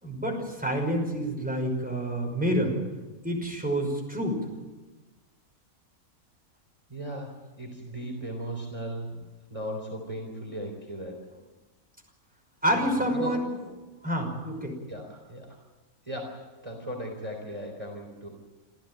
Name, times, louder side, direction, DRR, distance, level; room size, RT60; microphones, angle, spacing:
voice 1, 0.0-2.8 3.2-4.4 12.6-13.5 14.0-14.8, equal, 5° right, 1 dB, 5.5 m, -28 dB
voice 2, 6.9-9.2 9.5-11.3 12.7-13.4 14.9-15.6 16.1-18.3, right 1 dB, 20° right, 2 dB, 3.5 m, -37 dB
27.0 x 14.5 x 8.9 m, 1.2 s
omnidirectional pair, 1.5 m